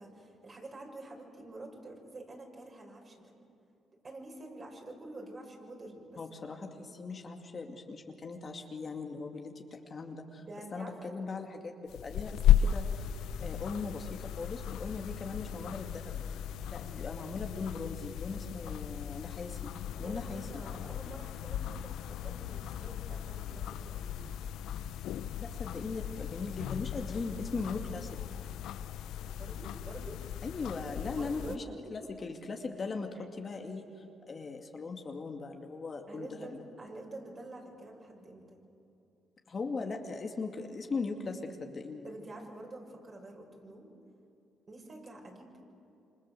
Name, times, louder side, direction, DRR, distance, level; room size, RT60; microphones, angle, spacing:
voice 1, 0.0-3.3 4.0-6.2 6.5-6.8 10.4-10.9 18.6-18.7 20.0-24.3 29.3-30.2 31.1-31.6 31.8-32.2 36.1-38.6 42.0-43.9 44.7-45.6, right 2 dB, 35° right, 1 dB, 6.6 m, -48 dB
voice 2, 6.2-10.5 10.7-13.1 13.4-16.2 16.7-19.7 20.0-20.6 25.4-28.2 30.4-31.6 31.9-36.5 39.5-42.1, left 4 dB, 40° left, 3 dB, 2.4 m, -39 dB
sound 1, 11.9-31.6, left 10 dB, 85° left, 0.7 m, -35 dB
28.0 x 26.0 x 7.9 m, 2.8 s
cardioid pair, 90°, 0 cm